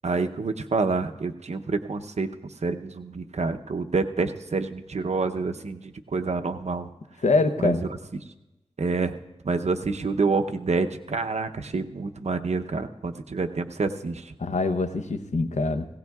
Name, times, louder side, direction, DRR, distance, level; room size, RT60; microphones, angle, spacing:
voice 1, 0.0-2.3 2.6-6.9 7.6-7.7 8.8-9.1 9.4-14.3, right 4 dB, 70° right, 7 dB, 0.7 m, -27 dB
voice 2, 7.2-7.8 14.4-15.9, left 3 dB, 85° left, 9 dB, 0.8 m, -24 dB
18.5 x 17.0 x 2.4 m, 0.99 s
wide cardioid pair, 80°, 12 cm